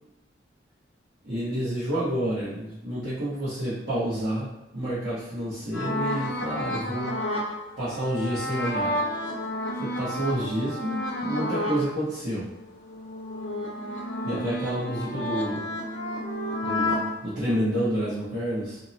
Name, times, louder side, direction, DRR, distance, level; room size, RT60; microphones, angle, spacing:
voice 1, 1.2-7.1 7.8-8.9 9.7-12.5 14.2-15.6 16.6-18.8, equal, 65° right, -13 dB, 1.0 m, -29 dB
sound 1, 5.7-11.9 12.3-17.1, left 1 dB, 85° left, 0.6 m, -31 dB
2.8 x 2.0 x 2.6 m, 0.98 s
head